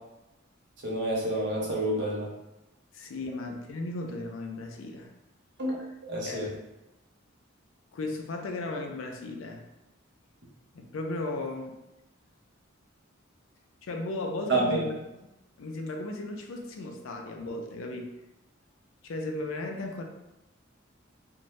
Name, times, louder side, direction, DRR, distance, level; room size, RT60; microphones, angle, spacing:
voice 1, 0.8-2.3 5.6-5.8 6.1-6.5 14.5-14.8, right 1 dB, 60° right, -4 dB, 0.8 m, -28 dB
voice 2, 2.9-5.1 6.2-6.5 7.9-9.6 10.7-11.7 13.8-15.0 15.6-18.1 19.0-20.0, left 2 dB, 80° left, 3 dB, 0.4 m, -35 dB
2.6 x 2.2 x 3.1 m, 0.95 s
head